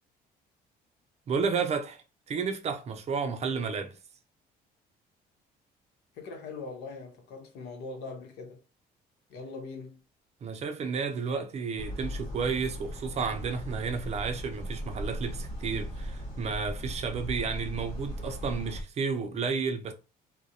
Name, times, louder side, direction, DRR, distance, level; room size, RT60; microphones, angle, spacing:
voice 1, 1.3-4.0 10.4-19.9, right 5 dB, 40° right, 0.4 m, -32 dB
voice 2, 6.1-8.6 9.3-10.0, left 3 dB, 80° left, 0.7 m, -41 dB
sound 1, 11.8-18.8, equal, 50° left, 0.9 m, -38 dB
2.4 x 2.0 x 2.7 m
cardioid pair, 110°, 17 cm